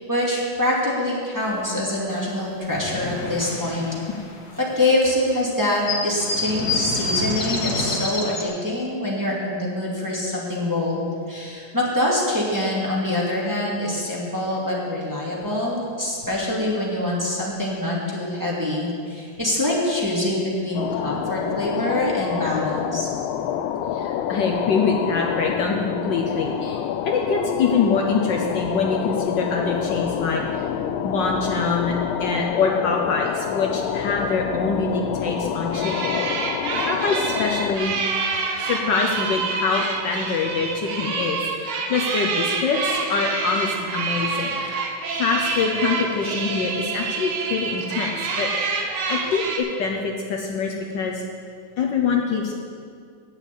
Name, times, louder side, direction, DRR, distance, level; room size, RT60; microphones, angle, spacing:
voice 1, 0.0-3.9 4.8-23.1, left 1 dB, 10° right, -6 dB, 2.2 m, -25 dB
sound 1, 2.1-2.2 2.4-4.9 5.3-5.4 5.6-8.4, left 2 dB, 50° left, 2.0 m, -27 dB
sound 2, 20.8-37.8, left 9 dB, 80° left, 1.4 m, -27 dB
voice 2, 23.9-30.4 31.0-36.2 36.5-38.0 38.6-44.6 45.2-51.2 51.8-52.5, left 4 dB, 65° left, 1 dB, 1.4 m, -24 dB
sound 3, 35.7-49.6, right 4 dB, 80° right, 1.9 m, -27 dB
9.6 x 7.2 x 8.3 m, 2.2 s
omnidirectional pair, 2.3 m